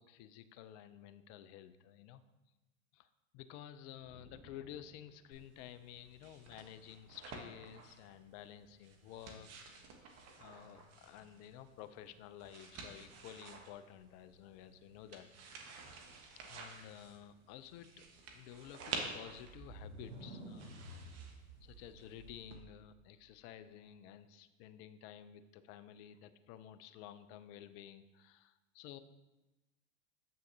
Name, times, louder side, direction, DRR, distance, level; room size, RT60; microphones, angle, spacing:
voice 1, 0.0-2.2 2.9-3.1 3.3-9.8 10.4-15.6 16.4-18.0 18.3-20.8 21.6-29.0, left 10 dB, 40° left, 13 dB, 0.5 m, -53 dB
sound 1, 4.0-5.6, right 1 dB, 20° right, 2.0 m, -62 dB
Newspaper Pages, 5.3-22.5, right 4 dB, 35° right, 1.1 m, -51 dB
sound 2, 19.2-22.9, right 1 dB, 65° right, 2.5 m, -51 dB
7.6 x 6.3 x 2.8 m, 1.1 s
hypercardioid pair, 95°, 41 cm